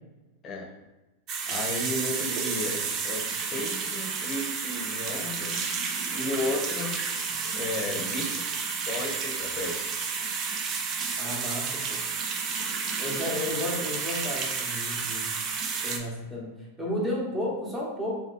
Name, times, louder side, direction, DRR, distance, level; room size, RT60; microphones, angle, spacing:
sound 1, 1.3-16.0, right 5 dB, 35° right, 0.5 m, -31 dB
voice 1, 1.5-3.2 3.5-5.6 6.1-7.0 7.6-9.8 12.1-12.4, left 1 dB, 25° left, -1 dB, 0.9 m, -34 dB
voice 2, 11.2-12.0 13.0-15.4 15.8-18.2, left 1 dB, 10° right, -4 dB, 1.1 m, -33 dB
3.0 x 2.8 x 3.9 m, 1.1 s
supercardioid pair, 135°, 0 cm